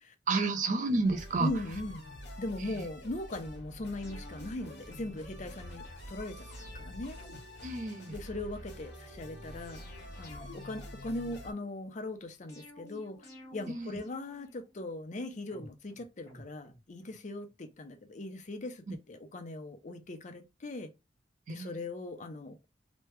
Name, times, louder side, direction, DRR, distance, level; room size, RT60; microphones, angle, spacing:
voice 1, 0.3-1.5 7.6-8.1 13.7-13.9 21.5-21.7, right 3 dB, 45° right, 0.5 m, -30 dB
sound 1, 1.0-11.5, left 1 dB, 75° left, 1.1 m, -47 dB
voice 2, 1.4-2.0 2.4-7.2 8.1-9.9 10.2-20.9 21.5-22.6, left 2 dB, 45° left, 0.5 m, -40 dB
sound 2, 4.0-5.6 6.4-8.5 9.4-11.6 12.5-14.9 15.5-17.2 17.5-17.6, left 1 dB, 20° left, 1.4 m, -54 dB
3.1 x 2.1 x 3.2 m
head